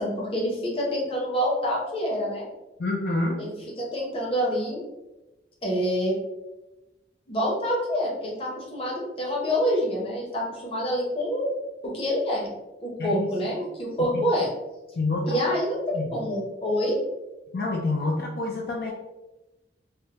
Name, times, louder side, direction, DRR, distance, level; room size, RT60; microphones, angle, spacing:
voice 1, 0.0-2.5 3.4-4.8 5.6-6.1 7.3-11.5 11.8-12.5 12.8-14.5 15.2-16.9, equal, 30° left, -3 dB, 0.7 m, -27 dB
voice 2, 2.8-3.4 13.0-13.3 14.1-14.2 15.0-15.6 15.9-16.1 17.5-18.9, left 2 dB, 60° left, -1 dB, 0.4 m, -27 dB
3.4 x 2.1 x 2.8 m, 1.0 s
head